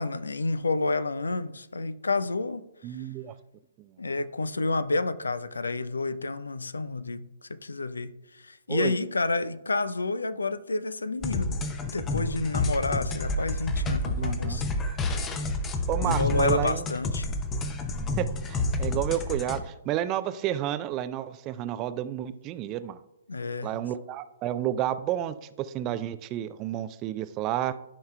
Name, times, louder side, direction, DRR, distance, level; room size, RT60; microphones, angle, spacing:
voice 1, 0.0-2.7 4.0-8.1 8.4-14.6 16.0-17.3 23.3-23.7, left 3 dB, 75° left, 0.4 m, -29 dB
voice 2, 2.8-3.3 3.8-3.9 8.7-8.9 14.2-14.6 15.9-16.9 18.2-23.0 23.6-27.7, right 12 dB, 25° right, 0.4 m, -31 dB
sound 1, 11.2-19.6, left 2 dB, 20° left, 0.7 m, -29 dB
13.0 x 5.7 x 2.2 m
figure-of-eight pair, 125°, 0 cm